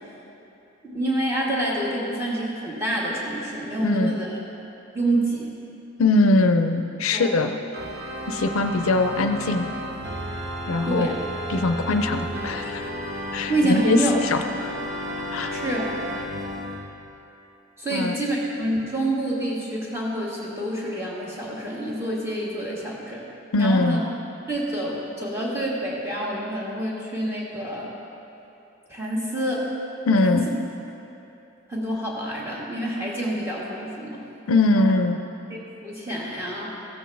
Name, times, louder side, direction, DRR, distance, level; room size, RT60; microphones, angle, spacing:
voice 1, 0.8-4.4 4.9-5.5 7.1-7.3 10.8-11.2 13.5-14.2 15.5-15.9 17.8-23.3 23.6-24.0 24.5-27.9 28.9-29.7 30.2-30.4 31.7-34.2 34.7-34.9 35.5-36.8, right 1 dB, 15° right, -5 dB, 1.5 m, -27 dB
voice 2, 6.0-7.5 8.3-9.7 10.7-11.1 11.5-12.9 13.3-14.7 15.3-15.5 17.9-18.1 23.5-24.0 30.1-30.5 34.5-35.2, left 2 dB, 85° left, 7 dB, 0.5 m, -21 dB
Organ, 7.7-16.8, equal, 55° right, 0.9 m, -32 dB
14.5 x 7.7 x 3.4 m, 3.0 s
head